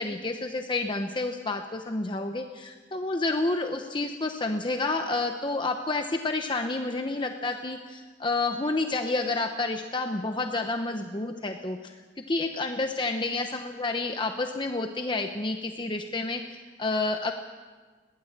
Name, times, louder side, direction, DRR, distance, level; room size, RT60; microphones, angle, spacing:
voice 1, 0.0-11.9 12.3-17.3, left 2 dB, 25° left, 5 dB, 0.9 m, -29 dB
21.5 x 16.5 x 7.4 m, 1.4 s
head